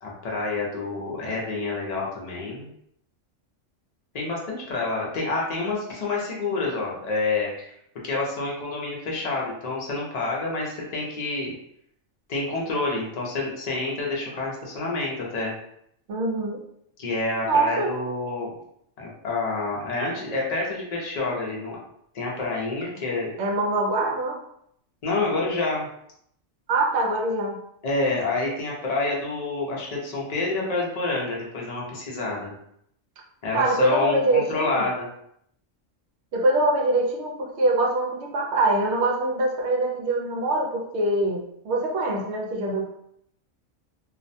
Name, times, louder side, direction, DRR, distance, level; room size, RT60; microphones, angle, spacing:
voice 1, 0.0-2.7 4.1-7.7 8.0-11.5 12.3-15.5 17.0-18.5 19.0-21.8 22.1-23.3 25.0-25.9 27.8-32.5 33.4-35.1, left 3 dB, 45° left, -3 dB, 0.6 m, -28 dB
voice 2, 16.1-16.6 17.4-17.9 23.4-24.4 26.7-27.6 33.5-34.9 36.3-42.9, right 2 dB, 65° right, 0 dB, 0.8 m, -24 dB
2.4 x 2.1 x 2.6 m, 0.72 s
omnidirectional pair, 1.4 m